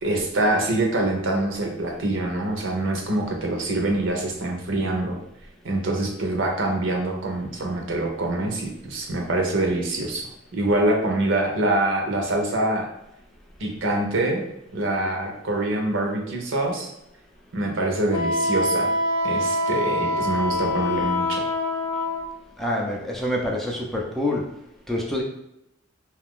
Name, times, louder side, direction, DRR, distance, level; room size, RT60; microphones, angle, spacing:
voice 1, 0.0-5.2 5.6-10.2 10.5-12.9 13.6-14.4 14.7-16.9 17.5-18.9 19.2-21.4, right 2 dB, 65° right, 1 dB, 0.7 m, -25 dB
Wind instrument woodwind instrument, 18.1-22.3, left 1 dB, 80° left, 0.5 m, -24 dB
voice 2, 22.6-24.4 24.9-25.2, left 1 dB, ahead, -2 dB, 0.4 m, -26 dB
2.7 x 2.4 x 3.6 m, 0.82 s
head